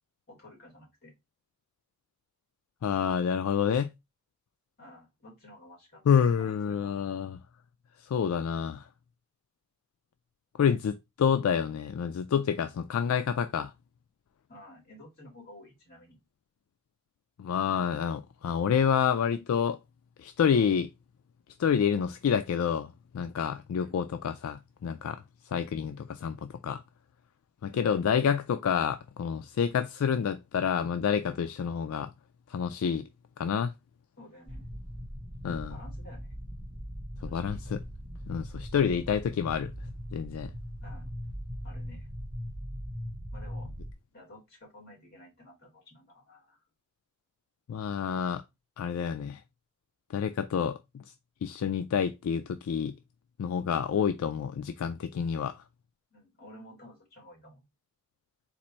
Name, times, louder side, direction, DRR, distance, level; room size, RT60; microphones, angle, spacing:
voice 1, 0.3-1.1 4.8-6.0 6.4-6.9 14.5-16.2 23.7-24.0 25.5-25.7 27.7-28.1 34.2-34.7 35.5-36.4 37.2-37.6 40.8-41.1 41.6-42.1 43.3-43.7 44.1-46.6 56.1-57.6, left 1 dB, 50° left, 2.5 m, -52 dB
voice 2, 2.8-3.9 6.1-7.4 8.0-8.9 10.6-13.7 17.4-19.8 20.2-20.9 21.6-25.2 25.5-26.8 27.6-32.1 32.5-33.1 33.4-33.7 35.4-35.8 37.2-37.8 38.3-39.7 40.1-40.5 47.7-48.4 48.8-49.4 50.1-51.0 51.4-52.9 53.4-55.6, left 7 dB, 75° left, 0.3 m, -28 dB
sound 1, 34.5-43.9, equal, 5° right, 0.8 m, -40 dB
4.2 x 2.5 x 4.2 m
head